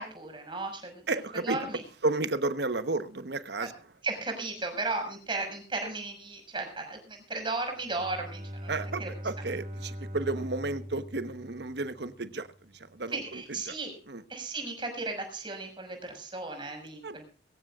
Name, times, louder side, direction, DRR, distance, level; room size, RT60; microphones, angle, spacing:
voice 1, 0.0-1.0 1.4-1.8 4.0-9.1 13.1-13.9 14.3-17.3, right 3 dB, 25° right, 5 dB, 5.9 m, -35 dB
voice 2, 1.1-1.6 2.0-3.7 8.7-12.5 12.7-13.7 14.1-14.2 17.0-17.2, right 2 dB, 65° right, 11 dB, 1.2 m, -32 dB
Bowed string instrument, 7.8-12.3, equal, 45° right, 5.2 m, -41 dB
23.0 x 15.5 x 2.5 m, 0.38 s
head